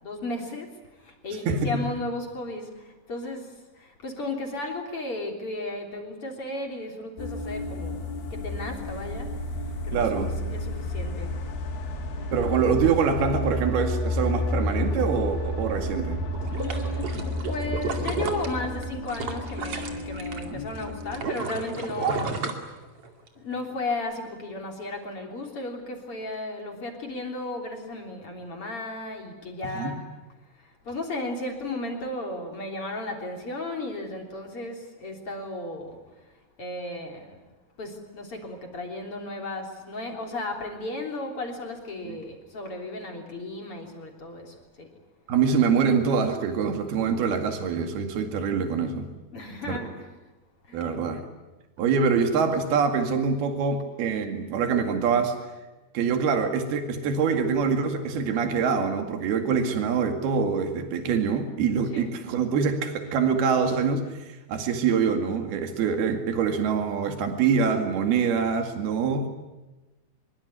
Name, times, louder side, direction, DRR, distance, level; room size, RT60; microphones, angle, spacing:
voice 1, 0.0-8.0 8.3-10.2 10.5-11.4 16.5-17.1 17.5-22.4 23.4-30.1 30.5-36.3 36.6-37.5 37.8-45.0 49.3-50.1 50.6-51.0 61.9-62.1, left 2 dB, 35° left, 2 dB, 4.0 m, -35 dB
voice 2, 1.5-1.8 9.9-10.3 12.3-16.2 20.5-20.6 22.0-22.5 29.7-29.9 42.0-42.2 45.3-49.1 49.7-49.8 50.7-51.2 51.8-55.4 55.9-64.1 64.5-69.3, right 6 dB, 75° right, 6 dB, 4.1 m, -25 dB
sound 1, 7.2-21.3, left 1 dB, 80° left, 4.4 m, -31 dB
sound 2, 16.3-20.4 20.8-23.3 23.7-23.8, right 4 dB, 40° right, 3.0 m, -33 dB
25.0 x 23.0 x 9.6 m, 1.1 s
omnidirectional pair, 4.5 m